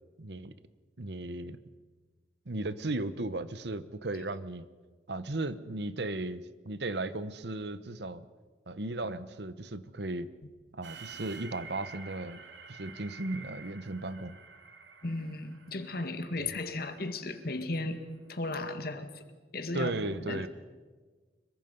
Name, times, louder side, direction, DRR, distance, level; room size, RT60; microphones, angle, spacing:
voice 1, 0.2-0.5 1.0-1.6 2.5-4.7 5.1-8.2 8.7-10.3 10.7-12.4 12.7-14.4 16.4-16.5 19.7-20.5, right 2 dB, 65° right, 14 dB, 1.0 m, -36 dB
sound 1, 10.8-17.7, right 5 dB, 85° right, 2.2 m, -49 dB
voice 2, 15.0-18.0 18.3-19.2 19.5-20.5, left 2 dB, 55° left, 8 dB, 2.0 m, -35 dB
25.5 x 23.0 x 5.4 m, 1.4 s
head